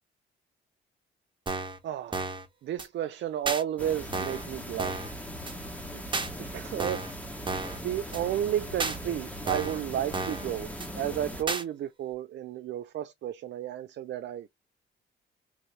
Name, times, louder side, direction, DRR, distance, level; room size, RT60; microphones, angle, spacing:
sound 1, 1.5-1.8 2.1-2.4 2.8-2.9 3.5-3.6 4.1-4.5 4.8-5.1 5.5-5.6 6.1-6.3 6.8-7.1 7.5-7.8 8.1-8.2 8.8-9.0 9.5-9.8 10.1-10.5 10.8-10.9 11.5-11.6, right 3 dB, 25° right, 1.3 m, -32 dB
voice 1, 1.8-2.2 2.6-5.1 5.9-6.0 6.4-7.0 7.8-14.5, right 11 dB, 65° right, 0.5 m, -32 dB
sound 2, 3.8-11.4, equal, 5° left, 1.4 m, -40 dB
3.9 x 3.0 x 3.2 m
cardioid pair, 90°, 20 cm